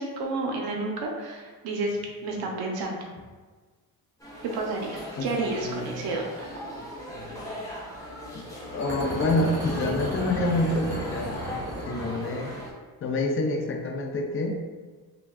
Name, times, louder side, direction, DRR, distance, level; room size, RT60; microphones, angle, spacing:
voice 1, 0.0-3.0 4.4-6.3, right 3 dB, 70° right, 0 dB, 0.8 m, -31 dB
sound 1, 4.2-12.7, equal, 10° left, 1.0 m, -38 dB
voice 2, 5.5-5.9 7.1-7.5 8.7-11.5 11.9-12.5 13.0-14.6, left 2 dB, 35° left, 3 dB, 0.5 m, -27 dB
sound 2, 8.8-12.6, right 1 dB, 25° right, 1.5 m, -35 dB
5.8 x 2.2 x 2.4 m, 1.4 s
cardioid pair, 125°, 38 cm